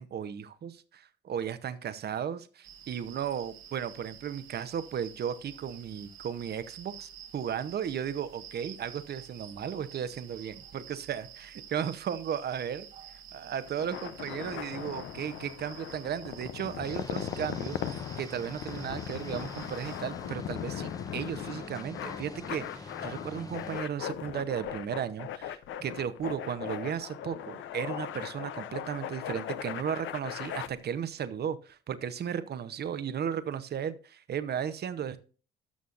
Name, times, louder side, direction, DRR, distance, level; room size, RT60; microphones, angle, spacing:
voice 1, 0.0-12.8 13.3-35.2, right 8 dB, 55° right, 13 dB, 0.9 m, -35 dB
sound 1, 2.6-20.0, right 9 dB, 80° right, 1.2 m, -50 dB
sound 2, 13.7-30.7, left 10 dB, 75° left, 0.7 m, -39 dB
sound 3, 16.8-23.8, left 3 dB, 20° left, 0.8 m, -45 dB
12.5 x 6.2 x 2.5 m, 0.37 s
cardioid pair, 90°, 20 cm